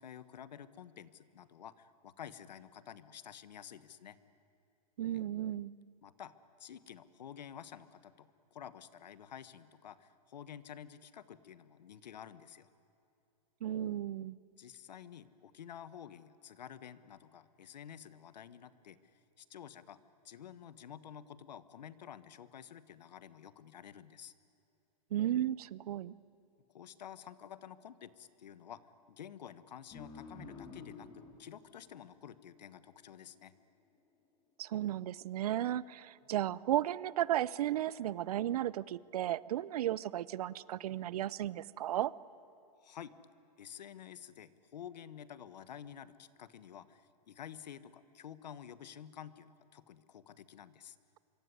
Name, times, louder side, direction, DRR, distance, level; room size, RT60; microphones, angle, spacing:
voice 1, 0.0-4.2 5.1-5.2 6.0-6.3 6.6-12.7 14.6-24.3 26.7-28.8 29.1-33.5 42.8-43.2 43.6-51.0, left 9 dB, 85° left, 15 dB, 1.4 m, -51 dB
voice 2, 5.0-5.7 13.6-14.4 25.1-26.1 34.6-42.1, right 12 dB, 65° right, 21 dB, 0.8 m, -34 dB
sound 1, 29.9-33.1, left 4 dB, 20° left, 3.2 m, -51 dB
25.5 x 24.0 x 9.7 m, 2.8 s
hypercardioid pair, 155°, 21 cm